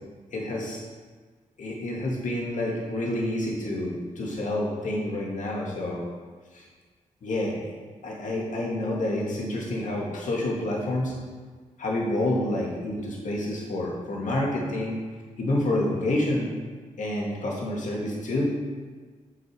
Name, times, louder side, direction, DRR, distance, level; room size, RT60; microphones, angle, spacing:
voice 1, 0.3-0.8 1.6-6.0 6.5-6.7 7.2-7.7 8.0-11.1 11.8-15.0 15.4-16.5 17.0-18.5, left 1 dB, 65° left, -3 dB, 2.2 m, -28 dB
7.3 x 6.9 x 4.6 m, 1.5 s
supercardioid pair, 50°, 14 cm